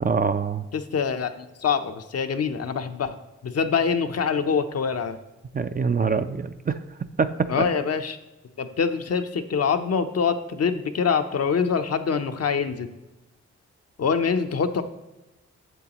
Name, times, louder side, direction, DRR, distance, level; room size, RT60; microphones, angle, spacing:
voice 1, 0.0-0.6 5.5-6.8 7.2-7.3 7.6-7.7, right 5 dB, 30° right, 10 dB, 0.5 m, -24 dB
voice 2, 0.7-3.1 3.4-5.2 7.5-8.2 8.6-12.9 14.0-14.8, left 6 dB, 55° left, 7 dB, 0.7 m, -25 dB
8.0 x 7.1 x 2.9 m, 1.0 s
cardioid pair, 50°, 29 cm